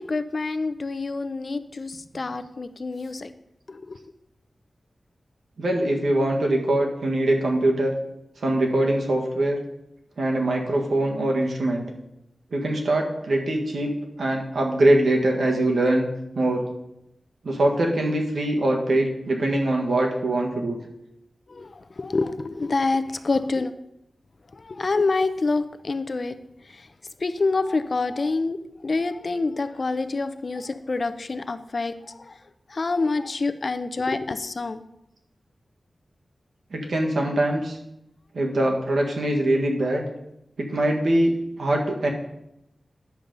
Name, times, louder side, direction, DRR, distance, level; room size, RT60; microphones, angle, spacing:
voice 1, 0.0-3.3 3.7-4.0 21.5-23.7 24.5-26.4 26.6-26.9 27.2-32.4 32.7-34.8, left 3 dB, 50° left, 11 dB, 0.5 m, -27 dB
voice 2, 5.6-7.9 8.4-9.6 10.2-11.8 12.5-13.9 14.2-16.1 16.3-16.6 17.4-20.8 36.7-37.8 38.3-40.0 40.6-42.1, right 1 dB, 75° right, 0 dB, 1.6 m, -23 dB
10.0 x 7.0 x 3.9 m, 0.84 s
wide cardioid pair, 95°, 0 cm